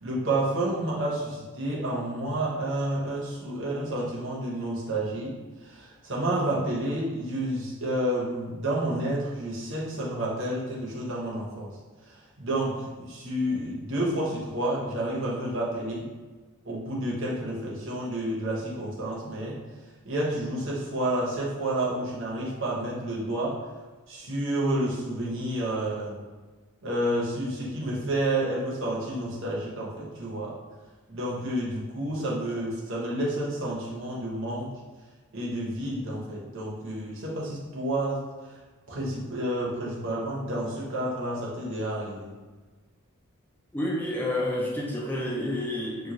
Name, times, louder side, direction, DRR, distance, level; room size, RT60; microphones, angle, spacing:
voice 1, 0.0-5.4 5.6-11.7 12.1-16.1 16.6-19.6 20.0-23.6 24.1-26.2 26.8-30.6 31.1-34.7 35.3-38.2 38.9-42.3, right 1 dB, 55° right, -5 dB, 0.8 m, -30 dB
voice 2, 43.7-46.1, left 1 dB, 10° left, -3 dB, 0.4 m, -29 dB
3.0 x 2.3 x 3.7 m, 1.3 s
head